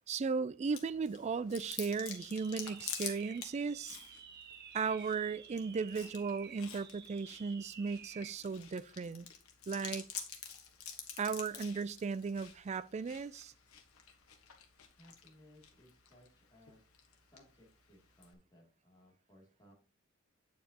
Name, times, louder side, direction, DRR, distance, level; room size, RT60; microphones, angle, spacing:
voice 1, 0.1-4.0 4.7-9.3 9.7-10.1 11.2-13.5, right 5 dB, 30° right, 0.3 m, -36 dB
Chewing mastication, 0.7-18.3, left 8 dB, 85° left, 1.4 m, -49 dB
sound 1, 1.5-8.4, right 7 dB, 50° right, 1.0 m, -53 dB
voice 2, 14.9-16.9 17.3-19.7, equal, 20° left, 2.8 m, -63 dB
8.7 x 7.2 x 2.9 m
head